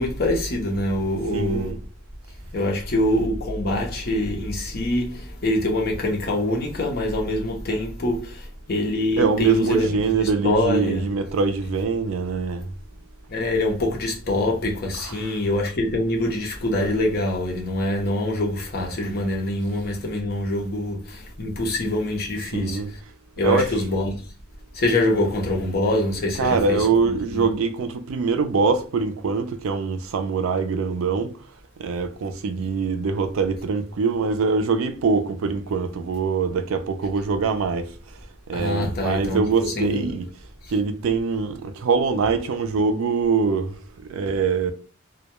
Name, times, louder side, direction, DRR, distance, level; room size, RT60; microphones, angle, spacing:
voice 1, 0.0-1.8 2.5-11.1 13.3-23.0 23.4-24.3 24.7-27.4 32.6-32.7 38.5-40.0 40.6-40.7, left 1 dB, 50° left, 0.6 m, -25 dB
voice 2, 1.3-1.8 9.2-12.7 22.5-22.9 23.4-23.7 26.4-31.5 31.8-38.2 38.5-40.3 40.7-44.7, right 5 dB, 80° right, 0.4 m, -23 dB
2.1 x 2.1 x 2.9 m
head